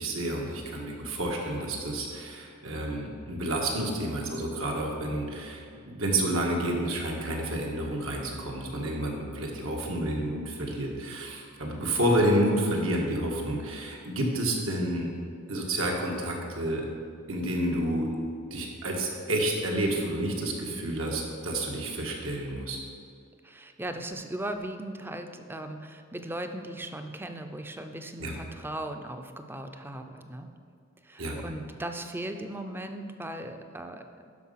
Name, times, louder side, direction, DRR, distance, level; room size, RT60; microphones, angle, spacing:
voice 1, 0.0-15.1 15.5-16.9 17.3-18.1 18.5-22.8 28.2-28.4 31.2-31.4, right 1 dB, 80° right, -1 dB, 1.7 m, -29 dB
voice 2, 23.4-30.5 31.0-34.0, right 1 dB, 10° right, 6 dB, 0.5 m, -38 dB
12.0 x 5.3 x 5.7 m, 2.3 s
head